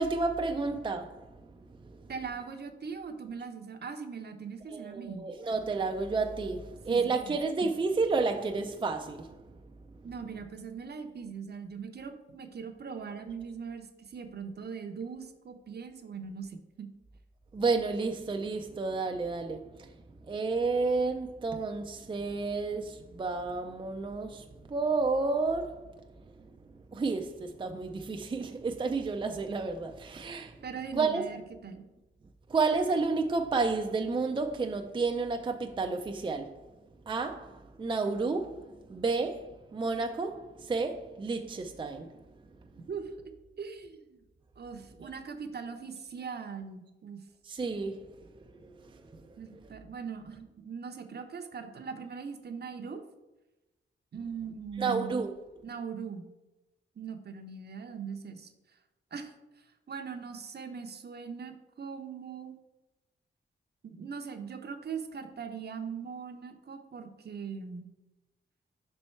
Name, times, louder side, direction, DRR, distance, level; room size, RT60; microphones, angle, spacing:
voice 1, 0.0-1.4 1.8-2.0 4.7-9.6 17.5-19.9 20.2-26.0 26.3-26.4 26.9-30.6 30.9-31.3 32.5-36.6 37.1-42.2 47.4-49.7 54.8-55.4, right 4 dB, 25° right, 0.4 m, -31 dB
voice 2, 2.1-5.3 6.9-7.4 10.0-16.9 30.6-31.8 42.9-43.1 43.6-44.2 44.6-47.2 49.4-53.0 54.1-55.1 55.6-56.3 57.0-58.5 59.1-62.6 63.8-67.9, right 6 dB, 50° right, 0.7 m, -40 dB
5.4 x 4.4 x 4.4 m
cardioid pair, 85°, 21 cm